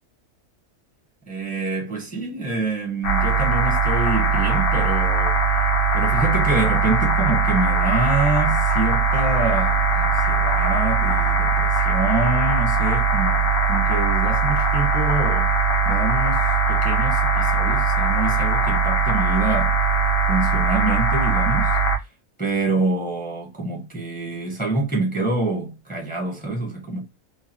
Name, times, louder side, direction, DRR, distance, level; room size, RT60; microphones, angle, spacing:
voice 1, 1.3-5.4 5.9-15.5 15.8-19.8 20.3-21.8 22.4-27.1, right 3 dB, 10° left, 0.7 m, -26 dB
sound 1, 3.0-22.0, right 3 dB, 55° left, 0.7 m, -20 dB
3.1 x 2.2 x 2.7 m
omnidirectional pair, 1.4 m